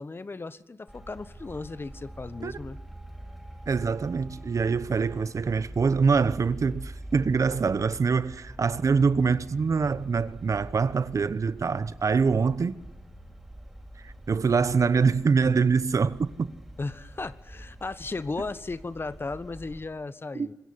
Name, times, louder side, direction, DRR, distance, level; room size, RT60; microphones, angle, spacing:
voice 1, 0.0-2.8 16.8-20.5, left 3 dB, 40° left, 1.3 m, -36 dB
Traffic noise roadway noise, 0.9-19.9, right 1 dB, ahead, 6.7 m, -44 dB
voice 2, 3.7-12.8 14.0-16.5 20.3-20.5, right 5 dB, 60° right, 1.1 m, -24 dB
25.5 x 21.5 x 9.7 m
cardioid pair, 70°, 6 cm